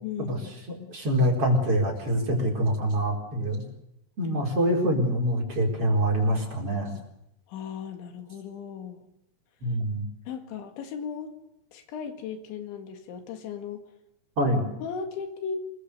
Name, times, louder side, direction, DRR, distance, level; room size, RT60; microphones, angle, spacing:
voice 1, 0.0-0.5 7.5-9.0 10.3-11.4 11.7-13.9 14.8-15.6, left 6 dB, 90° left, 6 dB, 4.5 m, -36 dB
voice 2, 0.7-3.6 4.2-7.0 9.6-10.0 14.4-14.6, equal, 30° right, 0 dB, 5.0 m, -25 dB
25.5 x 22.0 x 6.8 m, 0.81 s
omnidirectional pair, 5.1 m